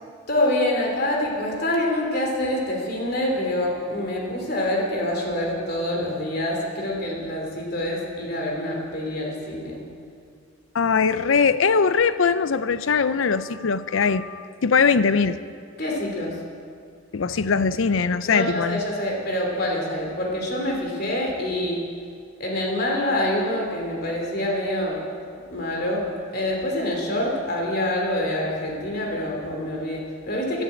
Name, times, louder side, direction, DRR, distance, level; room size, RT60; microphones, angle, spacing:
voice 1, 0.3-9.8 15.8-16.3 18.3-21.8 22.4-25.0 25.5-26.0 26.3-30.6, left 1 dB, 50° left, 0 dB, 3.1 m, -26 dB
voice 2, 10.7-15.4 17.1-18.8, left 5 dB, 70° left, 14 dB, 0.5 m, -21 dB
12.0 x 11.5 x 8.5 m, 2.3 s
head